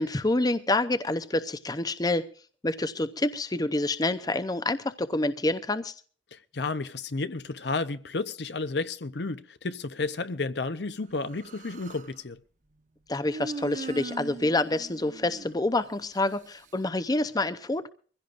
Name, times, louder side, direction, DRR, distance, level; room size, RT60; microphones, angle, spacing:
voice 1, 0.0-2.2 2.6-5.9 13.1-17.9, left 2 dB, 20° left, 0.6 m, -27 dB
voice 2, 6.3-12.4, left 3 dB, 65° left, 0.8 m, -32 dB
Human voice, 11.2-12.1 13.3-16.0, right 2 dB, 45° right, 1.0 m, -40 dB
23.5 x 16.0 x 2.5 m
head